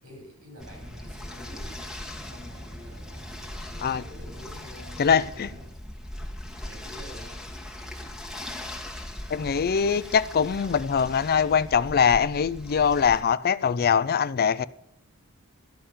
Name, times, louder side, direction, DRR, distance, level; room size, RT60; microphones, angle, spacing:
voice 1, 0.0-1.9 2.1-5.8 6.6-7.4, equal, 85° right, 5.3 m, -47 dB
sound 1, 0.6-13.2, left 1 dB, ahead, 1.5 m, -40 dB
sound 2, 0.6-5.7, right 1 dB, 35° right, 0.8 m, -49 dB
voice 2, 5.0-5.5 9.3-14.6, left 7 dB, 45° left, 0.4 m, -23 dB
13.0 x 5.5 x 8.6 m
head